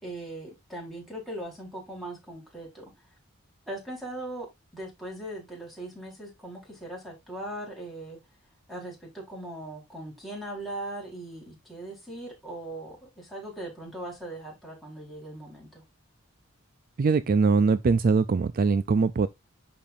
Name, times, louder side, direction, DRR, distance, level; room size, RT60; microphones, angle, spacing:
voice 1, 0.0-2.8 3.7-4.5 4.7-8.2 8.7-15.8, right 1 dB, ahead, 4.4 m, -39 dB
voice 2, 17.0-19.3, right 4 dB, 40° right, 0.3 m, -22 dB
10.5 x 5.2 x 2.6 m
head